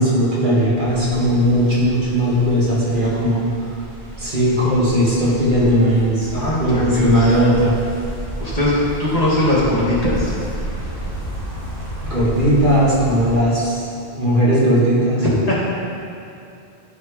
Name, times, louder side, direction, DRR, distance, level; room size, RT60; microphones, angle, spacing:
voice 1, 0.0-3.5 4.2-6.3 6.6-7.7 12.1-15.2, equal, 50° right, -8 dB, 2.3 m, -17 dB
sound 1, 0.9-13.4, right 1 dB, 90° right, 2.8 m, -31 dB
voice 2, 6.3-7.3 8.4-8.7 9.0-10.4 15.2-15.6, left 1 dB, 35° left, -8 dB, 2.2 m, -20 dB
13.5 x 6.3 x 3.4 m, 2.7 s
omnidirectional pair, 1.1 m